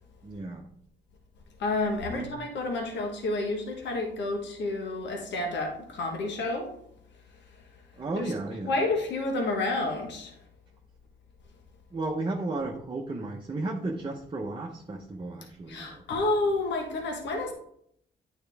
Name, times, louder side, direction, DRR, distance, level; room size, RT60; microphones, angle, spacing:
voice 1, 0.2-0.7 2.1-2.3 8.0-8.8 11.9-16.0, right 2 dB, 25° right, 0 dB, 0.9 m, -34 dB
voice 2, 1.6-6.7 8.2-8.3 8.6-10.3 15.7-17.5, left 2 dB, 75° left, 2 dB, 1.4 m, -30 dB
9.0 x 4.5 x 3.5 m, 0.68 s
cardioid pair, 85°, 19 cm